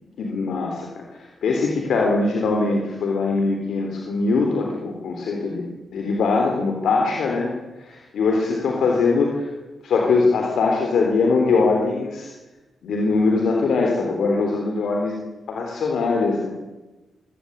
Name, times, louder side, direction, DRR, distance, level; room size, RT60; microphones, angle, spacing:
voice 1, 0.2-1.0 1.4-5.6 5.9-7.5 7.8-9.5 9.8-12.3 12.8-15.1 15.5-16.5, left 4 dB, 75° left, 0 dB, 3.7 m, -21 dB
23.0 x 17.5 x 8.1 m, 1.1 s
cardioid pair, 100°, 0 cm